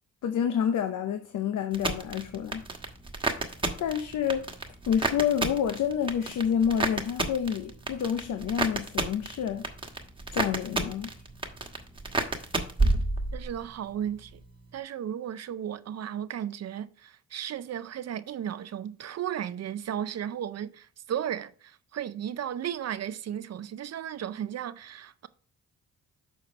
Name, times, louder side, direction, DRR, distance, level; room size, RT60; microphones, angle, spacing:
voice 1, 0.2-2.6 3.8-4.5 4.9-9.7 10.3-11.1, left 8 dB, 70° left, 0.7 m, -28 dB
sound 1, 1.7-13.6 13.9-14.5, right 2 dB, 15° right, 1.3 m, -31 dB
voice 2, 13.3-14.4 14.7-25.3, right 10 dB, 55° right, 0.5 m, -35 dB
6.8 x 4.4 x 4.9 m
cardioid pair, 80°, 32 cm